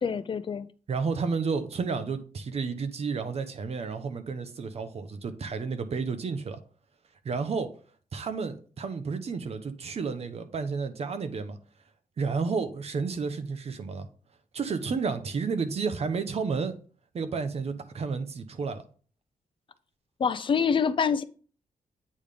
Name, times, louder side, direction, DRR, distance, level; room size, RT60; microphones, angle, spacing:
voice 1, 0.0-0.7 20.2-21.2, left 6 dB, 35° left, 0.5 m, -26 dB
voice 2, 0.9-6.6 7.2-7.7 8.1-11.6 12.2-14.1 14.5-16.7 17.1-18.8, right 5 dB, 45° right, 0.9 m, -31 dB
8.6 x 3.7 x 5.1 m
wide cardioid pair, 160°, 14 cm